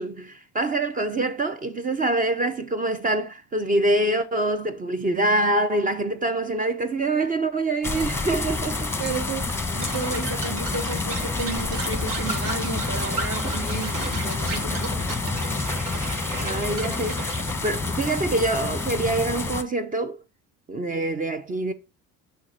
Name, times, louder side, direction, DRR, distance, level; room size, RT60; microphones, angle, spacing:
voice 1, 0.0-8.9 14.7-15.2 16.4-17.3 17.6-20.2 20.7-21.7, right 2 dB, 25° right, 0.6 m, -25 dB
sound 1, 7.8-19.6, left 3 dB, 5° left, 1.0 m, -28 dB
voice 2, 9.0-9.5 9.7-15.0, right 4 dB, 45° right, 3.5 m, -32 dB
sound 2, 9.8-17.6, right 3 dB, 65° right, 1.7 m, -35 dB
9.3 x 3.4 x 4.3 m
supercardioid pair, 90°, 35 cm